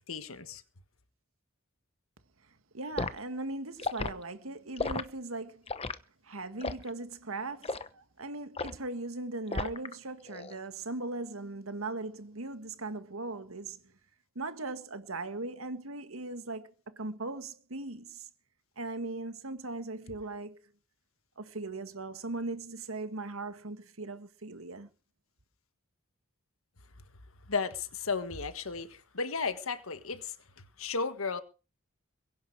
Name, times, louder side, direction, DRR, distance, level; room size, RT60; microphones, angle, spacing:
voice 1, 0.1-0.6 27.5-31.4, left 4 dB, 80° left, 1.6 m, -34 dB
voice 2, 2.7-5.7 6.2-13.9 14.4-18.3 18.8-20.6 21.4-24.9, right 2 dB, 80° right, 1.8 m, -39 dB
Liquid, 3.0-3.2 3.8-4.1 4.8-5.1 5.7-6.0 6.6-6.9 7.6-7.9 8.6-8.8 9.5-9.9 10.3-10.6, left 3 dB, 30° left, 0.9 m, -33 dB
22.5 x 11.0 x 4.8 m
head